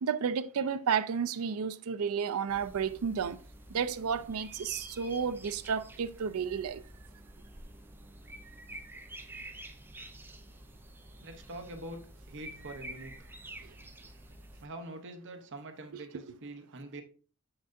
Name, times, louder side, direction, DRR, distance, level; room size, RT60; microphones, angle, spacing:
voice 1, 0.0-3.4 3.7-6.8 15.9-16.0, right 6 dB, 70° right, 0.4 m, -32 dB
sound 1, 2.5-14.7, right 1 dB, 10° right, 0.6 m, -49 dB
voice 2, 11.2-12.0 12.3-13.1 14.6-17.0, right 2 dB, 55° right, 0.9 m, -44 dB
7.4 x 5.8 x 2.6 m
head